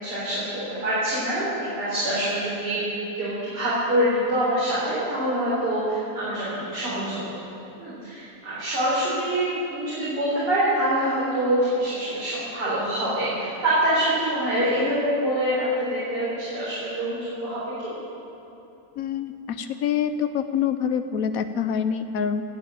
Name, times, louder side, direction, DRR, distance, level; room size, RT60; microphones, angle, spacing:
voice 1, 0.0-2.9 3.1-7.4 7.8-17.9, right 1 dB, 85° right, -10 dB, 4.5 m, -25 dB
voice 2, 19.0-22.4, left 8 dB, 65° left, 10 dB, 1.0 m, -26 dB
17.0 x 7.2 x 8.9 m, 2.9 s
omnidirectional pair, 1.7 m